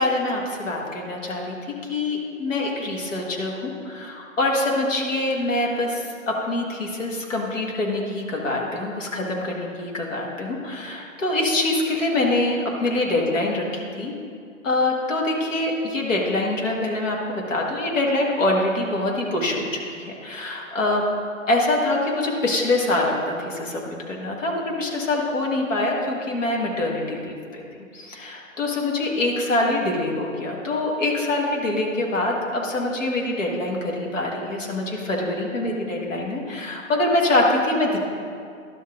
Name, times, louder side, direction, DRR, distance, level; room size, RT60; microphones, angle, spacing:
voice 1, 0.0-14.1 14.6-21.0 21.5-27.6 27.9-38.0, left 2 dB, 65° left, -1 dB, 1.8 m, -24 dB
11.5 x 5.7 x 3.7 m, 2.3 s
hypercardioid pair, 135°, 40 cm